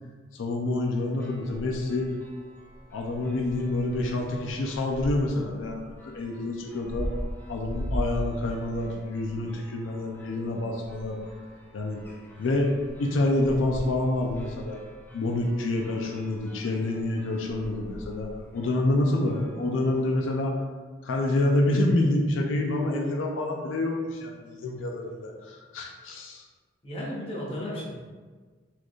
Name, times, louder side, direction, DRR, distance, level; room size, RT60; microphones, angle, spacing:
voice 1, 0.3-2.1 2.9-7.1 7.5-11.2 11.7-12.0 12.4-12.7 13.0-14.9 15.1-20.5 21.0-26.4, left 2 dB, 90° left, 1 dB, 0.4 m, -27 dB
sound 1, 1.0-20.4, equal, 10° left, 0.5 m, -40 dB
voice 2, 26.8-27.9, left 1 dB, 30° left, -5 dB, 0.9 m, -34 dB
4.3 x 2.3 x 3.0 m, 1.4 s
head